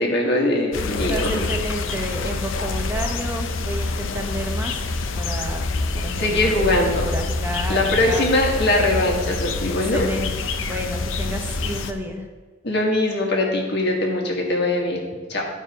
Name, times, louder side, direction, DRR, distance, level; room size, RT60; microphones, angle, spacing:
voice 1, 0.0-1.5 6.2-7.1 7.7-10.0 12.6-15.5, left 1 dB, 60° left, 0 dB, 1.7 m, -21 dB
sound 1, 0.7-11.9, left 3 dB, 80° left, 0.6 m, -26 dB
voice 2, 0.7-4.9 5.1-5.6 5.9-8.3 9.7-12.3, equal, 10° right, 3 dB, 0.9 m, -31 dB
11.5 x 4.6 x 5.0 m, 1.4 s
head